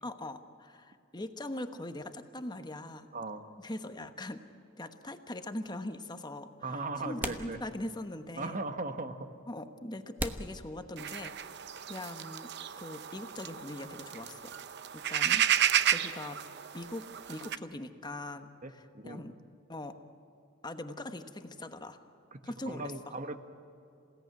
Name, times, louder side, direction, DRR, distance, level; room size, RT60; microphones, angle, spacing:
voice 1, 0.0-3.1 3.6-4.4 4.8-8.6 9.5-11.3 11.9-14.6 14.9-15.5 15.8-16.4 16.7-19.3 19.7-19.9 20.6-22.0 22.4-22.9, left 1 dB, 20° left, 8 dB, 1.2 m, -41 dB
sound 1, 5.4-5.5 6.6-6.7 7.2-8.1 8.4-8.5 9.3-9.4 10.2-11.4, right 1 dB, 10° right, 1.0 m, -39 dB
voice 2, 6.6-7.6 8.4-9.3 18.6-19.2 22.3-22.4 22.7-23.4, right 3 dB, 40° right, 8 dB, 1.4 m, -38 dB
sound 2, 11.0-17.6, right 10 dB, 55° right, 0.7 m, -32 dB
27.5 x 17.0 x 9.4 m, 2.6 s
head